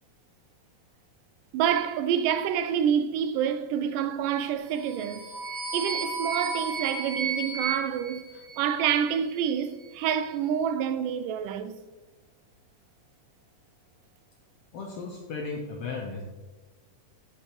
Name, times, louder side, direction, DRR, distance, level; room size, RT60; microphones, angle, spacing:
voice 1, 1.5-5.3 5.7-8.2 8.6-11.8, right 8 dB, 90° right, 2.2 m, -27 dB
sound 1, 4.8-9.1, right 4 dB, 50° right, 2.3 m, -33 dB
voice 2, 14.7-16.2, left 4 dB, 70° left, 1.4 m, -35 dB
8.5 x 8.2 x 3.0 m
omnidirectional pair, 3.7 m